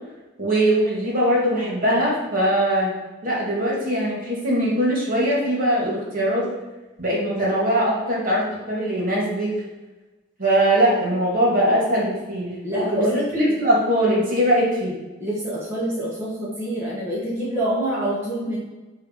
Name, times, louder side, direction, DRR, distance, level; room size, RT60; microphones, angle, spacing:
voice 1, 0.4-2.9 3.2-6.5 7.0-9.5 10.4-15.0, right 1 dB, 45° right, -5 dB, 2.2 m, -21 dB
voice 2, 12.6-13.5 15.2-18.6, right 1 dB, 15° right, -8 dB, 1.3 m, -26 dB
7.9 x 3.3 x 5.3 m, 1.2 s
head